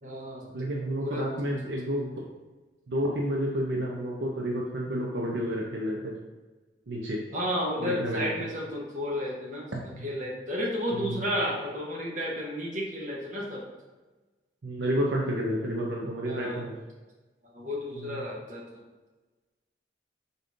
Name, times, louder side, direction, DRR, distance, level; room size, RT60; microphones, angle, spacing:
voice 1, 0.0-0.6 1.0-1.5 7.3-13.7 16.2-16.6 17.5-18.6, equal, 45° right, -3 dB, 1.1 m, -32 dB
voice 2, 0.5-2.2 2.9-6.1 6.9-7.2 7.8-8.3 9.7-10.1 10.9-11.2 14.6-16.7 18.0-18.2, equal, 75° right, -2 dB, 0.6 m, -30 dB
5.0 x 4.1 x 2.6 m, 1.2 s
head